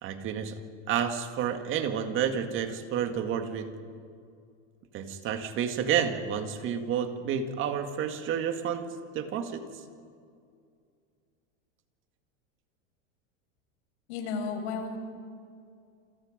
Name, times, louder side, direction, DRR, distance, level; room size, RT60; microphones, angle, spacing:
voice 1, 0.0-0.6 0.9-3.7 4.9-9.7, right 8 dB, 35° right, 7 dB, 2.1 m, -30 dB
voice 2, 14.1-15.0, left 5 dB, 65° left, 4 dB, 5.6 m, -33 dB
28.5 x 27.0 x 5.2 m, 2.3 s
supercardioid pair, 150°, 35 cm